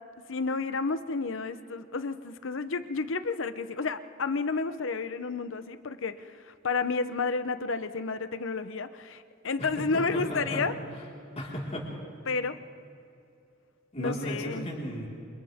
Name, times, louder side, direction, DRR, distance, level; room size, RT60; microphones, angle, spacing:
voice 1, 0.3-10.7 12.3-12.6 14.0-14.7, left 4 dB, 65° left, 11 dB, 0.9 m, -31 dB
voice 2, 9.6-10.7 11.4-11.9 13.9-15.1, equal, 30° left, -4 dB, 4.7 m, -35 dB
29.0 x 27.5 x 3.7 m, 2.6 s
head